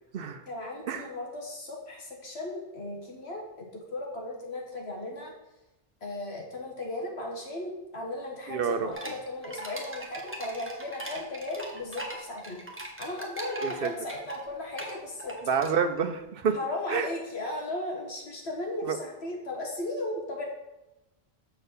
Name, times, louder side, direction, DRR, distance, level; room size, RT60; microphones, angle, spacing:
voice 1, 0.5-5.3 6.0-12.6 13.0-15.4 16.5-20.5, left 2 dB, 75° left, 0 dB, 1.9 m, -36 dB
voice 2, 8.5-8.9 13.6-13.9 15.5-16.6 16.9-17.1 18.8-19.0, right 6 dB, 65° right, 9 dB, 0.8 m, -28 dB
sound 1, 8.9-16.1, right 1 dB, 10° right, 1.1 m, -41 dB
6.8 x 4.4 x 6.7 m, 0.96 s
omnidirectional pair, 1.1 m